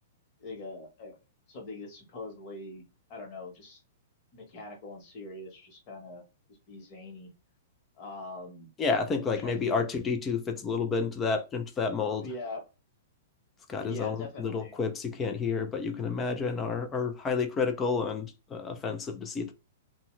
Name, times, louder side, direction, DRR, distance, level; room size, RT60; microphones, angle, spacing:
voice 1, 0.4-1.2 1.5-2.8 3.1-3.8 4.3-6.2 6.7-7.3 8.0-8.7 9.2-9.8 12.2-12.6 13.8-14.7, left 2 dB, 35° left, 0.9 m, -42 dB
voice 2, 8.8-12.3 13.7-19.5, left 5 dB, 15° left, 0.3 m, -30 dB
2.7 x 2.1 x 3.0 m
hypercardioid pair, 155°, 0 cm